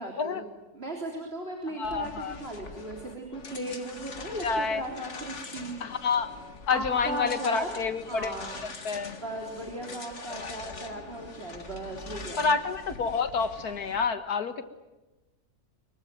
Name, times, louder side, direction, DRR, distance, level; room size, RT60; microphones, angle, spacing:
voice 1, 0.0-5.8 6.7-7.7 8.1-8.6 9.2-12.5, right 1 dB, 40° right, 1 dB, 3.7 m, -37 dB
voice 2, 1.8-2.4 4.4-4.8 5.8-6.3 6.7-8.4 8.6-9.1 10.3-10.7 12.4-14.6, left 5 dB, 80° left, 10 dB, 2.2 m, -29 dB
sound 1, 1.8-14.1, left 3 dB, 50° left, 2.2 m, -43 dB
24.5 x 23.0 x 9.2 m, 1.1 s
omnidirectional pair, 1.6 m